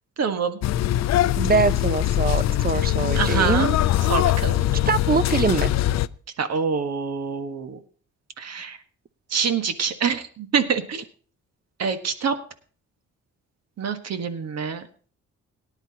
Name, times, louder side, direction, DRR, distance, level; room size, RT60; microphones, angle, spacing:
voice 1, 0.2-0.6 3.1-3.7 4.1-4.7 6.4-7.8 8.4-8.8 9.3-11.0 11.8-12.3 13.8-14.8, right 6 dB, 55° right, 9 dB, 1.5 m, -26 dB
sound 1, 0.6-6.1, left 13 dB, 60° left, 0.5 m, -22 dB
voice 2, 1.4-3.8 4.9-5.7, right 5 dB, 30° right, 15 dB, 0.7 m, -23 dB
18.0 x 10.5 x 2.9 m, 0.41 s
cardioid pair, 90°, 30 cm